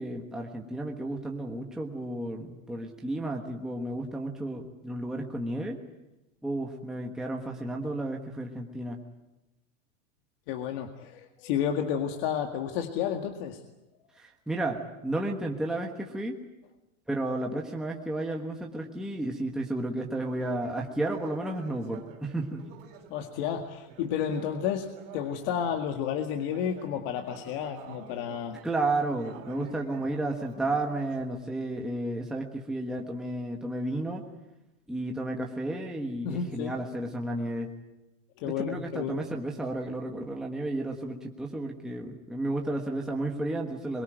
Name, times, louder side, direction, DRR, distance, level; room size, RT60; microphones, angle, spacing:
voice 1, 0.0-5.8 6.4-9.0 14.2-16.3 17.1-22.6 28.6-34.2 34.9-37.7 38.4-44.0, right 2 dB, ahead, 0 dB, 1.3 m, -32 dB
voice 2, 10.5-13.6 23.1-28.6 29.5-29.6 36.2-36.8 38.4-39.2, left 8 dB, 45° left, 4 dB, 2.0 m, -31 dB
Conversation, 20.1-25.8 26.3-31.2, right 5 dB, 40° right, 4.1 m, -50 dB
24.5 x 22.5 x 9.1 m, 0.98 s
supercardioid pair, 165°, 41 cm